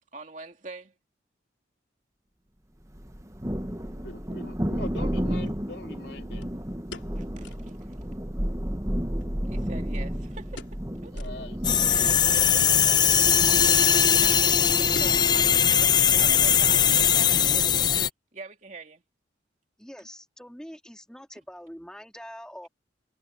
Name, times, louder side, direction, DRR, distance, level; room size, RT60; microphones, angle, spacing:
voice 1, 0.1-0.9 7.2-8.0 9.5-11.2 11.9-13.9 14.2-17.5 18.3-19.0, right 3 dB, 40° right, 2.7 m, -44 dB
Thunder, 2.9-16.1, equal, 15° right, 1.3 m, -33 dB
voice 2, 4.0-6.5 11.1-12.1, left 2 dB, 60° left, 2.9 m, -42 dB
sound 1, 4.3-4.4 6.4-7.8 8.1-8.2 8.5-8.6 9.2-10.1 10.5-10.9 11.1-11.4 11.9-12.0 13.0-13.2 13.6-13.8 14.0-14.4 14.9-16.0 16.3-16.4 17.0-17.3 17.6-17.7, left 3 dB, 80° left, 3.5 m, -46 dB
sound 2, 11.6-18.1, left 8 dB, 20° left, 0.3 m, -20 dB
voice 3, 15.9-16.4 17.2-18.0 19.8-22.7, equal, 5° left, 3.7 m, -44 dB
head